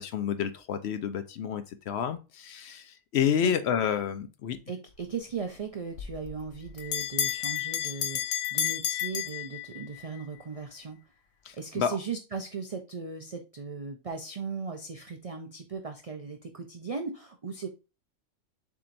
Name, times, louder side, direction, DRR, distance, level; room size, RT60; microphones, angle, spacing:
voice 1, 0.0-4.6 11.4-12.0, left 8 dB, 65° left, 10 dB, 0.8 m, -29 dB
voice 2, 4.7-11.0 11.6-17.7, right 5 dB, 60° right, 5 dB, 0.3 m, -37 dB
Bell, 5.9-10.0, left 10 dB, 90° left, 1.0 m, -31 dB
7.0 x 2.9 x 2.5 m, 0.30 s
omnidirectional pair, 1.3 m